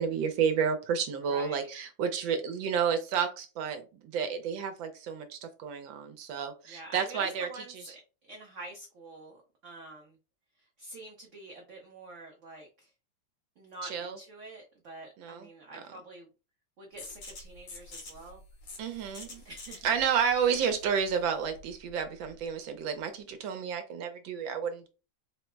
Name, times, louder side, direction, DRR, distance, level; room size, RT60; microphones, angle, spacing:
voice 1, 0.0-3.8 4.1-7.5 7.7-7.8 13.8-14.2 15.2-15.5 15.7-15.8 18.8-19.4 19.8-24.9, right 7 dB, 80° right, 1.4 m, -31 dB
voice 2, 1.2-1.7 6.7-7.9 8.2-10.1 10.6-12.9 13.6-16.3 16.8-18.4 19.4-19.9, right 1 dB, 60° right, 0.8 m, -47 dB
sound 1, 17.0-22.5, left 2 dB, 65° left, 1.9 m, -48 dB
3.9 x 2.0 x 4.4 m
omnidirectional pair, 2.1 m